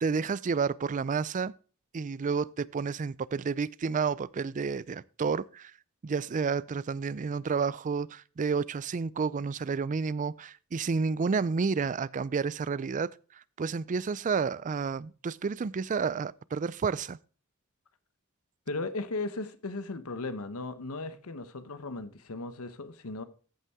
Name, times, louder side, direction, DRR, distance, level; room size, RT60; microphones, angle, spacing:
voice 1, 0.0-1.5 1.9-5.7 6.0-13.1 13.6-17.2, right 5 dB, 35° right, 0.4 m, -30 dB
voice 2, 18.7-23.2, left 3 dB, 85° left, 1.0 m, -36 dB
14.5 x 5.6 x 3.5 m
head